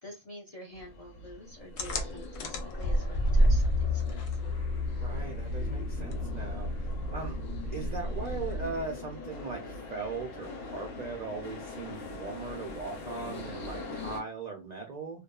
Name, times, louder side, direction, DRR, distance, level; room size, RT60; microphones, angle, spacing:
voice 1, 0.0-4.4, left 1 dB, 45° left, 0.5 m, -48 dB
sound 1, 0.7-14.2, left 3 dB, 90° left, 1.2 m, -43 dB
sound 2, 1.8-8.9, left 1 dB, 65° left, 0.8 m, -30 dB
voice 2, 4.9-7.4 7.7-15.2, right 4 dB, 65° right, 0.4 m, -39 dB
2.5 x 2.3 x 2.2 m
omnidirectional pair, 1.3 m